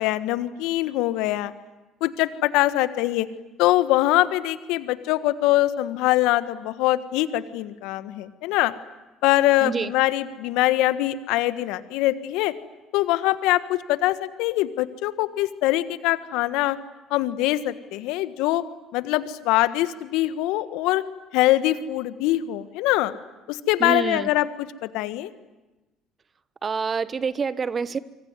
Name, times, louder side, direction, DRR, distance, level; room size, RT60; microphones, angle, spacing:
voice 1, 0.0-1.5 2.0-3.3 3.6-8.7 9.2-12.5 12.9-16.8 17.1-18.6 18.9-21.0 21.3-23.1 23.5-25.3, left 16 dB, 70° left, 12 dB, 1.4 m, -23 dB
voice 2, 9.6-9.9 23.8-24.3 26.6-28.0, right 5 dB, 35° right, 15 dB, 1.2 m, -27 dB
25.5 x 24.5 x 9.6 m, 1.1 s
hypercardioid pair, 60°, 0 cm